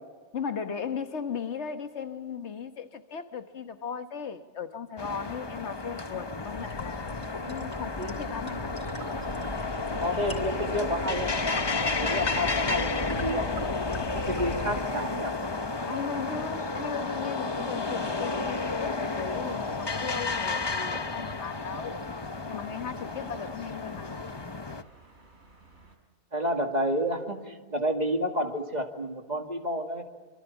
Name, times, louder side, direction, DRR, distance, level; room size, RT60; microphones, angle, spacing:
voice 1, 0.3-8.7 15.8-22.0 22.5-24.2, left 6 dB, 80° left, 1.6 m, -37 dB
sound 1, 5.0-24.8, left 3 dB, 25° left, 0.8 m, -32 dB
sound 2, 6.5-14.7, left 1 dB, 45° left, 3.3 m, -40 dB
sound 3, 9.0-26.0, right 2 dB, 85° right, 4.1 m, -51 dB
voice 2, 10.0-13.5 14.1-15.3 26.3-30.0, equal, 40° right, 2.4 m, -30 dB
26.5 x 24.5 x 7.2 m
omnidirectional pair, 1.2 m